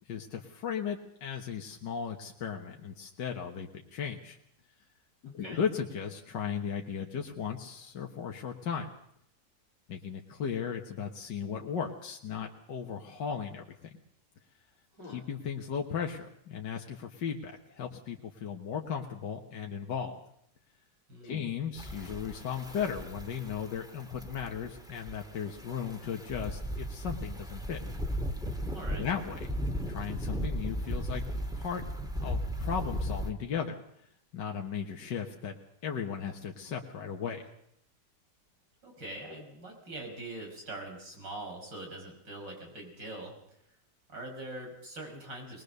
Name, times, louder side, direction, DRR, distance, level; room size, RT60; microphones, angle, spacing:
voice 1, 0.1-4.4 5.3-8.9 9.9-14.0 15.0-20.2 21.2-27.8 28.9-29.5 29.9-31.2 31.5-31.8 32.2-33.8 34.3-35.6 35.8-37.4, left 7 dB, 80° left, 2 dB, 2.1 m, -36 dB
voice 2, 5.3-5.6 15.0-15.2 21.1-21.4 28.7-29.1 38.8-43.3 44.1-45.6, right 2 dB, 75° right, 2 dB, 6.2 m, -43 dB
sound 1, 21.8-33.3, equal, ahead, 1.8 m, -36 dB
21.5 x 21.0 x 6.7 m, 0.72 s
omnidirectional pair, 1.9 m